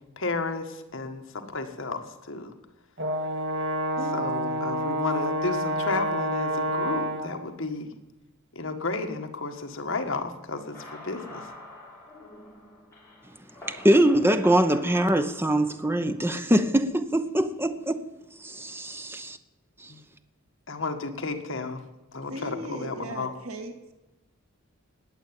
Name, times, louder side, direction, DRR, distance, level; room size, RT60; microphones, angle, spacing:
voice 1, 0.2-2.5 4.1-7.9 8.5-11.5 19.9-20.0 20.7-21.8 22.1-23.3, left 3 dB, 60° left, 1.7 m, -32 dB
Brass instrument, 3.0-7.4, right 1 dB, 55° right, 2.2 m, -28 dB
voice 2, 4.0-4.6 22.3-23.9, right 1 dB, 80° right, 1.9 m, -38 dB
sound 1, 10.5-16.3, left 2 dB, 15° left, 6.0 m, -46 dB
voice 3, 13.7-18.0 18.4-19.4 19.8-19.9, right 1 dB, 10° right, 0.8 m, -23 dB
19.5 x 8.1 x 8.8 m
head